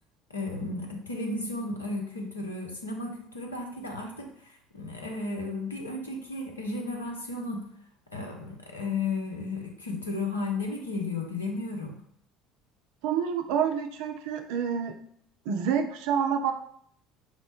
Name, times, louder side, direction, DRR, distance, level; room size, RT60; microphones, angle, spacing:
voice 1, 0.3-7.7 8.1-12.0, left 3 dB, 85° left, 1 dB, 0.7 m, -34 dB
voice 2, 13.0-15.0 15.5-16.5, right 7 dB, 65° right, 6 dB, 0.4 m, -28 dB
4.3 x 2.1 x 4.4 m, 0.66 s
figure-of-eight pair, 60°, 0 cm